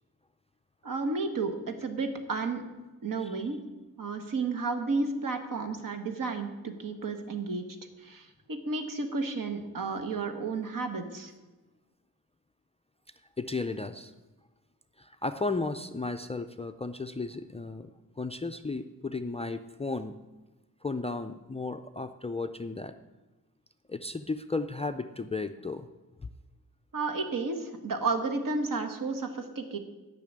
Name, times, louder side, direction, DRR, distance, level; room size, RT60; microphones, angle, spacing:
voice 1, 0.8-2.6 3.0-3.6 4.0-7.6 8.0-11.3 26.9-29.8, right 3 dB, 60° right, 6 dB, 1.5 m, -32 dB
voice 2, 13.4-14.1 15.0-17.9 18.2-20.2 20.8-23.0 23.9-25.9, left 3 dB, 20° left, 9 dB, 0.3 m, -34 dB
12.5 x 5.9 x 8.6 m, 1.2 s
wide cardioid pair, 160°, 37 cm